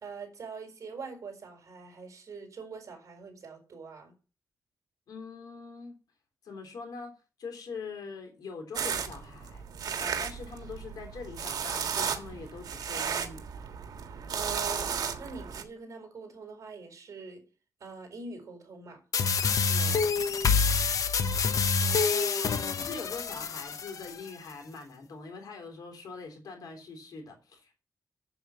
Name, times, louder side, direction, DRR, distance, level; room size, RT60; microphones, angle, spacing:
voice 1, 0.0-4.1 14.3-17.4 17.8-19.0 21.8-22.6, right 4 dB, 55° right, 4 dB, 4.2 m, -43 dB
voice 2, 5.1-6.0 6.4-7.1 7.4-9.6 10.0-13.4 19.7-20.2 22.8-27.8, left 4 dB, 80° left, 3 dB, 3.7 m, -43 dB
sound 1, 8.7-15.6, right 7 dB, 85° right, 1.6 m, -34 dB
sound 2, 19.1-24.1, left 5 dB, 60° left, 1.1 m, -27 dB
8.0 x 7.8 x 7.0 m, 0.34 s
wide cardioid pair, 170°, 6 cm